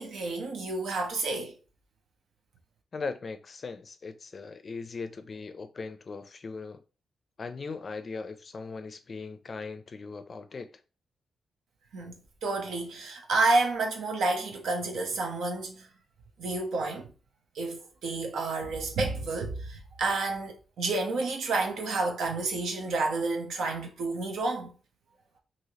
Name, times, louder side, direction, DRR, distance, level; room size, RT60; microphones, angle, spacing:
voice 1, 0.0-1.5 11.9-15.9 16.4-17.1 17.5-24.8, right 3 dB, 85° right, 0.7 m, -30 dB
voice 2, 2.9-6.8 7.4-10.7, left 4 dB, 45° left, 0.4 m, -39 dB
3.0 x 2.7 x 2.8 m
cardioid pair, 100°, 0 cm